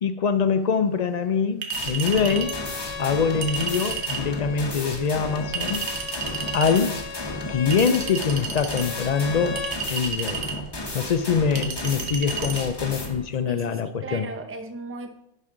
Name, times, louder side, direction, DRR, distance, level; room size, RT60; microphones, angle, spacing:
voice 1, 0.0-2.5 3.0-5.9 6.5-7.1 7.5-9.6 9.9-10.4 10.9-14.3, left 6 dB, 55° left, 0.5 m, -24 dB
Chink clink, 1.6-2.6 3.4-4.3 5.5-6.8 7.7-8.9 9.6-10.6 11.6-12.6, right 5 dB, 75° right, 1.3 m, -32 dB
sound 1, 1.7-13.2, left 1 dB, 25° left, 1.0 m, -34 dB
Bowed string instrument, 2.2-9.8, left 6 dB, 70° left, 0.9 m, -37 dB
voice 2, 13.5-15.3, right 2 dB, 15° right, 0.6 m, -37 dB
10.5 x 5.4 x 3.8 m
omnidirectional pair, 1.2 m